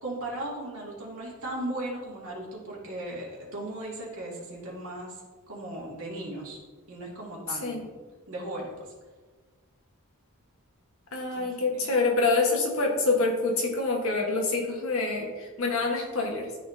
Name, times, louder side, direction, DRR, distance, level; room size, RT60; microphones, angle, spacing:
voice 1, 0.0-5.1 5.5-6.6 6.9-8.0 8.3-8.7 11.3-11.9, right 1 dB, 65° right, -4 dB, 2.3 m, -37 dB
voice 2, 7.5-7.8 11.1-16.5, left 3 dB, 65° left, 1 dB, 1.4 m, -26 dB
12.0 x 4.2 x 2.7 m, 1.3 s
head